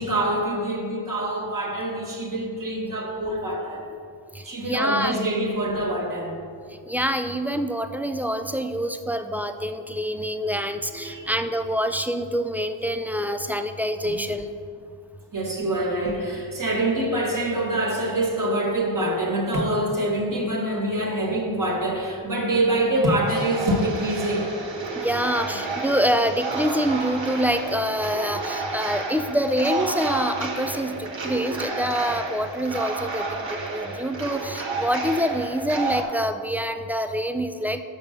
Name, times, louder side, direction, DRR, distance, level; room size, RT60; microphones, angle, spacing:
voice 1, 0.0-3.9 4.4-6.4 10.5-11.3 14.0-14.2 15.3-24.5, right 1 dB, 40° right, 1.6 m, -25 dB
voice 2, 4.3-5.2 6.9-14.5 25.0-37.8, equal, 5° right, 0.3 m, -26 dB
sound 1, 23.3-36.0, right 3 dB, 70° right, 1.4 m, -31 dB
6.3 x 5.3 x 6.5 m
cardioid pair, 65°, 47 cm